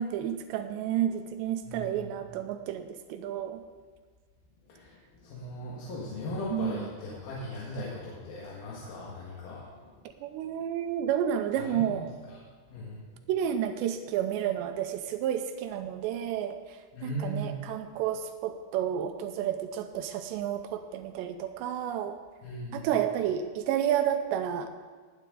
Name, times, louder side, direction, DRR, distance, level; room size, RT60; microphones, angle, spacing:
voice 1, 0.0-3.6 6.5-6.9 10.2-12.1 13.3-22.2 22.7-24.7, right 10 dB, 80° right, 8 dB, 2.7 m, -31 dB
voice 2, 1.6-2.1 4.7-9.9 11.6-12.0 12.3-12.4 12.7-13.1 16.9-17.6 22.4-22.9, left 1 dB, 60° left, -5 dB, 3.1 m, -38 dB
19.0 x 9.5 x 3.8 m, 1.5 s
omnidirectional pair, 5.4 m